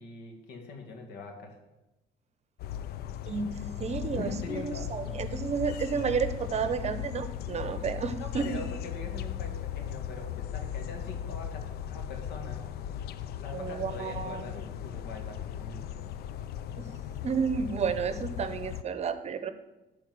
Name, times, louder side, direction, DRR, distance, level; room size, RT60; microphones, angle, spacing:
voice 1, 0.0-1.6 4.1-4.9 8.2-12.7 13.4-15.9, left 3 dB, 85° left, 4 dB, 2.0 m, -42 dB
sound 1, 2.6-18.8, left 10 dB, 70° left, 0.5 m, -37 dB
voice 2, 3.3-8.6 13.5-14.5 16.8-16.9 17.2-19.5, right 6 dB, 40° right, 11 dB, 0.9 m, -31 dB
10.5 x 4.7 x 7.7 m, 1.0 s
cardioid pair, 110°, 17 cm